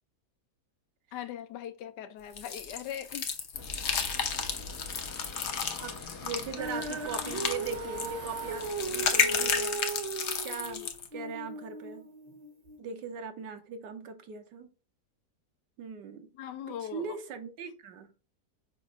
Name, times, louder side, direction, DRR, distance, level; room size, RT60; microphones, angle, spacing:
voice 1, 1.1-3.3 16.3-17.2, left 10 dB, 85° left, 1.3 m, -40 dB
sound 1, 2.4-11.1, left 6 dB, 50° left, 0.9 m, -32 dB
sound 2, 3.5-9.6, left 3 dB, 65° left, 2.1 m, -45 dB
voice 2, 5.5-9.8 10.4-12.1 12.8-14.7 15.8-16.3 16.7-18.1, right 5 dB, 85° right, 1.6 m, -40 dB
Female singing, 6.6-12.8, right 3 dB, 40° right, 1.0 m, -37 dB
7.1 x 2.5 x 5.4 m
omnidirectional pair, 1.8 m